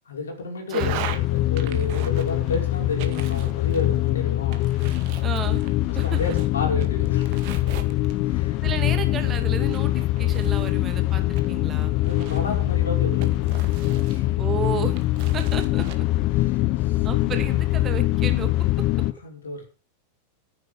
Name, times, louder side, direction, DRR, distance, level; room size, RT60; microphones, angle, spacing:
voice 1, 0.1-4.9 5.9-7.4 7.9-8.0 8.2-8.6 12.0-13.8 14.1-14.4 16.3-17.1 19.2-19.6, left 3 dB, 70° left, 2 dB, 5.3 m, -32 dB
voice 2, 0.7-1.0 5.2-5.6 6.0-6.2 8.6-11.9 14.4-14.9 15.3-16.0 17.0-18.5, right 7 dB, 25° right, 7 dB, 2.3 m, -32 dB
sound 1, 0.7-1.2 1.6-2.6 3.0-4.1 4.5-6.5 6.8-8.3 8.9-10.8 11.3-12.6 13.2-14.5 15.0-16.0, right 10 dB, 45° right, 2.0 m, -39 dB
sound 2, 0.8-19.1, left 16 dB, 40° left, 0.9 m, -23 dB
14.0 x 10.0 x 5.2 m, 0.36 s
figure-of-eight pair, 90°, 0 cm